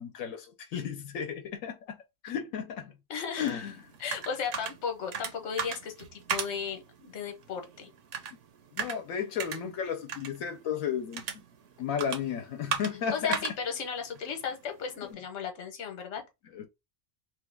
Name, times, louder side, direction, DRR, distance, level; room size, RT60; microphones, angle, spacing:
voice 1, 0.0-2.0 2.2-3.0 3.4-3.8 8.7-11.2 11.8-13.4 16.5-16.7, left 8 dB, 90° left, 1.0 m, -33 dB
voice 2, 3.1-3.6 4.0-7.9 13.1-16.2, left 6 dB, 60° left, 1.1 m, -35 dB
sound 1, 3.5-15.1, right 6 dB, 70° right, 1.0 m, -39 dB
3.1 x 2.3 x 3.1 m
omnidirectional pair, 1.4 m